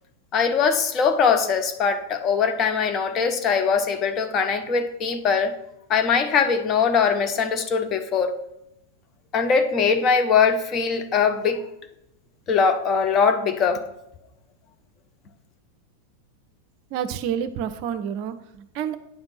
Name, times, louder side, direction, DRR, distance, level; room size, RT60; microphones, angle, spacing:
voice 1, 0.3-5.6 5.9-8.4 9.3-11.6 12.5-13.8, left 6 dB, 30° left, 7 dB, 0.8 m, -21 dB
voice 2, 16.9-19.0, right 9 dB, 45° right, 11 dB, 0.5 m, -29 dB
9.1 x 3.5 x 5.6 m, 0.84 s
figure-of-eight pair, 90°, 0 cm